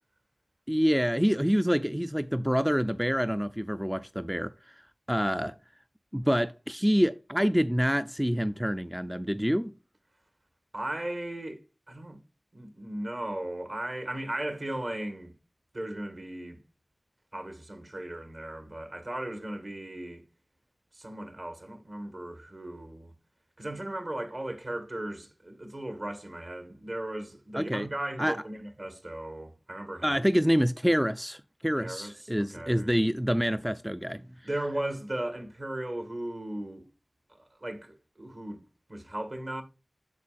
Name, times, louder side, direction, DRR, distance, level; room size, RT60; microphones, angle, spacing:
voice 1, 0.7-4.7 5.1-5.5 6.1-9.7 27.5-27.9 28.2-28.4 30.0-34.2, equal, 5° right, 0.3 m, -27 dB
voice 2, 10.7-12.2 12.5-15.3 15.7-16.6 17.3-20.2 20.9-23.1 23.6-30.2 31.8-32.9 34.4-36.9 37.4-38.6 38.9-39.6, right 1 dB, 55° right, 1.7 m, -37 dB
8.3 x 6.8 x 2.4 m
wide cardioid pair, 65°, 0 cm